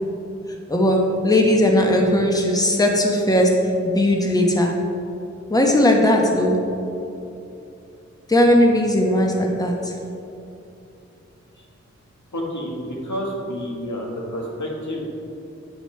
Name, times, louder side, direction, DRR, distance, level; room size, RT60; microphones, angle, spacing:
voice 1, 1.2-3.5 3.9-4.7 5.5-6.5 8.3-10.0, left 1 dB, 15° left, 0 dB, 1.0 m, -18 dB
voice 2, 12.3-15.0, equal, 80° left, -2 dB, 1.6 m, -29 dB
8.8 x 8.3 x 3.3 m, 2.8 s
wide cardioid pair, 55°, 29 cm